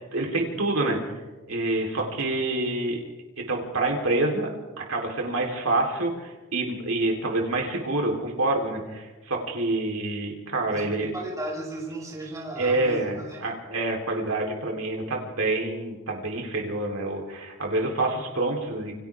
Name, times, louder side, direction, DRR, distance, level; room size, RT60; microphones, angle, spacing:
voice 1, 0.1-1.0 1.5-3.0 3.4-4.5 4.9-11.1 12.6-18.9, right 2 dB, 70° right, 0 dB, 3.9 m, -27 dB
voice 2, 10.7-13.5, right 1 dB, 15° right, -3 dB, 5.7 m, -35 dB
29.0 x 25.5 x 3.7 m, 1.2 s
head